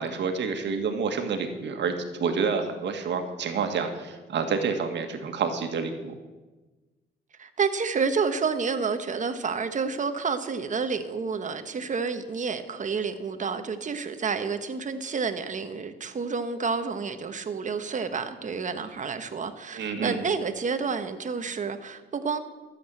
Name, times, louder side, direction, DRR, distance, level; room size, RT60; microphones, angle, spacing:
voice 1, 0.0-6.1 19.7-20.2, right 5 dB, 65° right, 6 dB, 1.8 m, -28 dB
voice 2, 7.4-22.4, right 5 dB, 40° right, 9 dB, 1.2 m, -29 dB
13.0 x 7.9 x 7.7 m, 1.2 s
cardioid pair, 90°, 20 cm